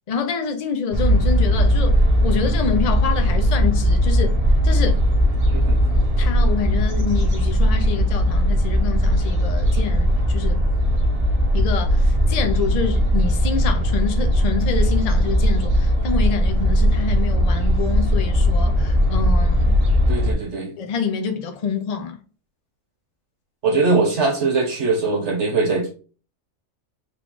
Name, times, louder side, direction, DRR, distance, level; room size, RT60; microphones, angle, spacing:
voice 1, 0.1-4.4 4.6-5.0 6.2-10.7 11.5-19.7 20.8-22.2, left 6 dB, 70° left, 0.3 m, -27 dB
sound 1, 0.9-20.3, equal, 35° right, 0.7 m, -18 dB
voice 2, 20.1-20.7 23.6-25.9, right 3 dB, 60° right, 1.4 m, -21 dB
3.6 x 2.3 x 3.7 m
omnidirectional pair, 1.4 m